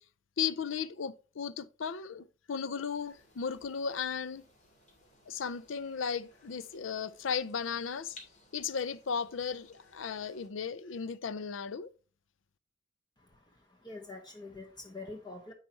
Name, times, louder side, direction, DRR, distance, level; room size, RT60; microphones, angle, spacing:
voice 1, 0.4-4.4 5.3-8.2 8.5-11.9, left 6 dB, 85° left, 0.5 m, -35 dB
sound 1, 2.9-10.5, left 2 dB, 40° left, 2.4 m, -60 dB
voice 2, 13.2-15.5, left 2 dB, 20° left, 1.0 m, -46 dB
10.0 x 4.1 x 4.5 m
head